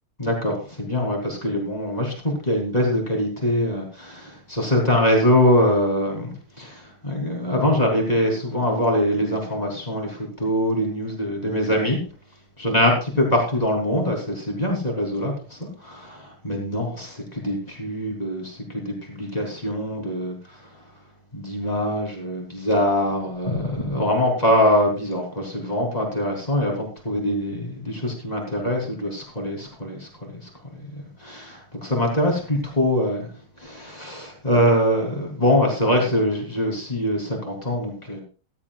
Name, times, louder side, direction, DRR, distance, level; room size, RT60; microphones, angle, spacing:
voice 1, 0.2-12.0 12.6-20.4 21.3-30.1 30.9-33.3 33.6-38.2, left 1 dB, 20° left, 0 dB, 3.6 m, -23 dB
15.0 x 13.0 x 2.5 m, 0.36 s
omnidirectional pair, 2.3 m